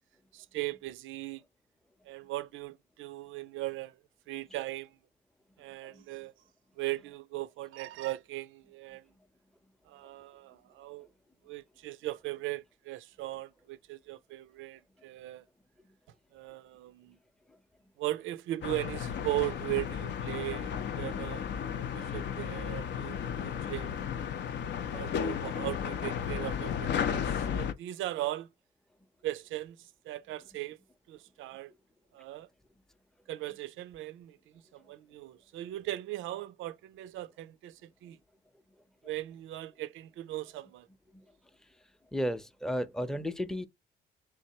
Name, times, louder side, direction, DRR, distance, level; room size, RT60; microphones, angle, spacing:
voice 1, 0.3-1.4 2.0-4.0 4.3-5.0 5.6-6.3 6.8-9.1 9.9-11.1 11.4-15.4 16.3-17.2 18.0-24.1 24.9-28.5 29.2-30.8 31.1-31.7 32.1-32.5 33.3-38.2 39.0-40.9, right 16 dB, 85° right, 0.4 m, -38 dB
sound 1, 18.6-27.7, left 8 dB, 65° left, 0.5 m, -34 dB
voice 2, 42.1-43.7, equal, 5° left, 0.5 m, -33 dB
3.6 x 3.2 x 2.7 m
cardioid pair, 90°, 20 cm